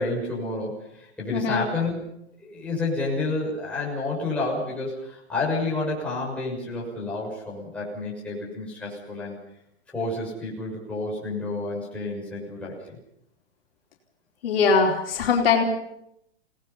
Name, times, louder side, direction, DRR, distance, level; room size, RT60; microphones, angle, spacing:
voice 1, 0.0-2.0 2.4-9.4 9.9-13.0, left 2 dB, 5° left, -6 dB, 6.4 m, -30 dB
voice 2, 1.3-1.6 14.4-15.6, left 5 dB, 55° left, 0 dB, 4.4 m, -21 dB
29.5 x 19.0 x 5.7 m, 0.78 s
hypercardioid pair, 160°, 34 cm